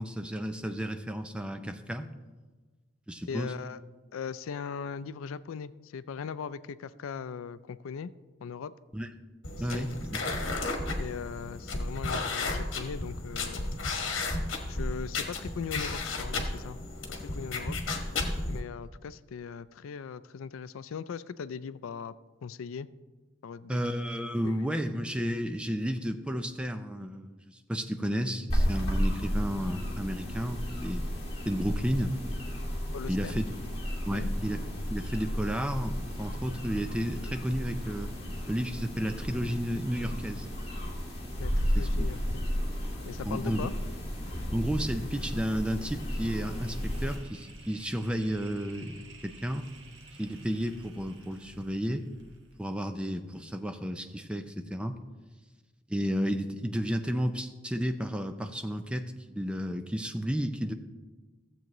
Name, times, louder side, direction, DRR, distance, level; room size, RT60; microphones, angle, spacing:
voice 1, 0.0-2.1 3.1-3.5 8.9-9.1 9.6-10.2 18.2-18.4 23.7-31.1 31.5-32.2 33.1-33.5 34.1-38.1 38.5-40.5 41.7-42.1 43.2-43.7 44.5-49.0 49.2-49.7 50.2-52.1 52.6-55.0 55.9-60.7, equal, 5° right, 7 dB, 0.4 m, -32 dB
voice 2, 3.3-3.8 4.1-8.1 8.4-8.7 9.6-9.9 11.0-13.8 14.7-16.8 17.3-17.8 18.5-22.1 22.4-22.9 23.4-23.8 24.4-24.7 32.9-33.3 34.1-34.3 41.4-42.5 43.0-43.7, left 6 dB, 90° left, 16 dB, 0.4 m, -39 dB
sound 1, 9.4-18.6, left 2 dB, 70° left, 1.3 m, -33 dB
sound 2, 28.5-47.1, equal, 30° left, 2.6 m, -33 dB
sound 3, 44.7-53.4, right 1 dB, 70° right, 1.2 m, -53 dB
14.5 x 7.6 x 3.0 m, 1.3 s
head